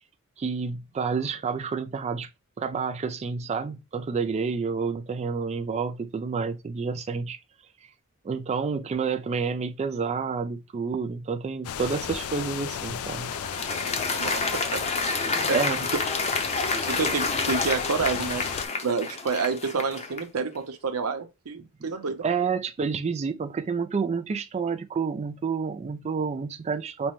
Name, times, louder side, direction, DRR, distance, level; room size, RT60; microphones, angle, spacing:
voice 1, 0.4-2.3 2.6-7.4 8.2-13.3 15.5-15.8 22.2-27.1, right 5 dB, 30° right, 0.3 m, -29 dB
sound 1, 11.6-18.7, left 8 dB, 80° left, 0.4 m, -34 dB
Applause, 12.8-20.4, left 3 dB, 30° left, 0.7 m, -29 dB
voice 2, 14.2-14.8 15.5-15.6 16.9-18.4 18.8-22.2, right 4 dB, 90° right, 0.7 m, -29 dB
5.2 x 2.1 x 3.0 m
head